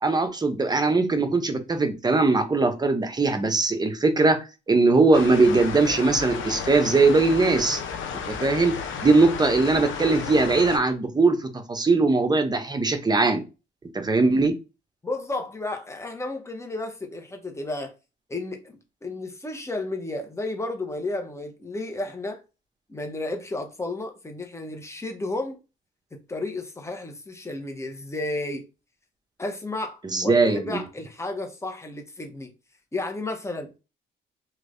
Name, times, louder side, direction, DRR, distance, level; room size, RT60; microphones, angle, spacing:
voice 1, 0.0-7.8 8.3-13.4 13.9-14.6 30.0-30.8, right 3 dB, 20° right, 0.7 m, -21 dB
sound 1, 5.1-10.8, left 6 dB, 75° left, 0.7 m, -33 dB
voice 2, 15.0-17.9 18.3-22.4 22.9-25.6 26.1-28.6 29.4-32.5 32.9-33.8, left 2 dB, 15° left, 0.9 m, -32 dB
3.1 x 3.0 x 2.6 m
cardioid pair, 90°, 20 cm